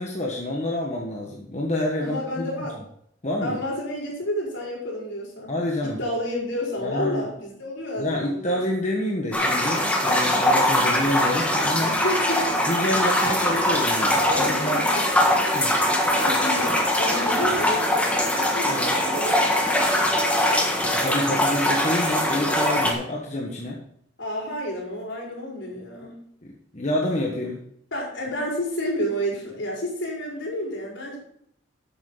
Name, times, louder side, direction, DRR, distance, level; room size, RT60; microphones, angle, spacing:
voice 1, 0.0-2.5 3.2-3.6 5.5-6.0 6.8-7.3 8.0-12.0 12.7-14.8 15.5-15.8 18.7-18.9 20.9-23.8 26.7-27.6, left 1 dB, 35° left, -1 dB, 1.4 m, -28 dB
voice 2, 2.0-2.8 3.4-5.5 5.8-8.6 12.0-12.7 14.2-15.5 16.1-20.6 22.4-22.6 24.2-26.2 27.9-31.2, equal, 70° left, -3 dB, 4.8 m, -30 dB
sound 1, 9.3-22.9, left 1 dB, 5° left, 1.4 m, -22 dB
11.5 x 8.2 x 3.9 m, 0.70 s
head